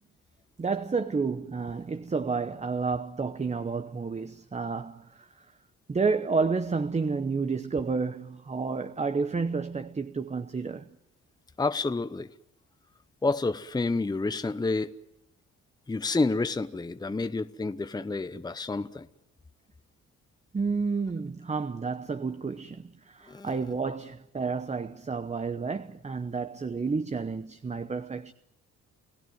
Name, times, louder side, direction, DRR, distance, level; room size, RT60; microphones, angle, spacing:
voice 1, 0.6-5.3 5.9-11.0 20.5-28.3, right 4 dB, 20° right, 0.9 m, -30 dB
voice 2, 11.6-12.3 13.2-14.9 15.9-19.1 23.3-23.5, left 3 dB, 15° left, 0.8 m, -29 dB
29.5 x 16.0 x 9.4 m
cardioid pair, 90°, 30 cm